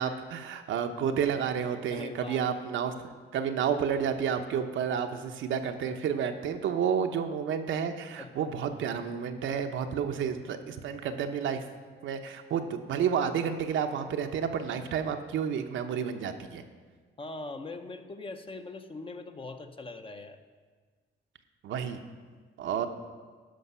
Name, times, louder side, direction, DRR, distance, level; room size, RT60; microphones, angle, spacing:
voice 1, 0.0-2.9 3.3-11.7 12.0-16.6 21.6-22.0 22.6-22.9, right 7 dB, 75° right, 6 dB, 0.8 m, -30 dB
voice 2, 1.9-2.4 8.2-8.5 17.2-20.4, left 3 dB, 25° left, 7 dB, 0.7 m, -41 dB
12.5 x 5.5 x 5.5 m, 1.5 s
cardioid pair, 90°, 20 cm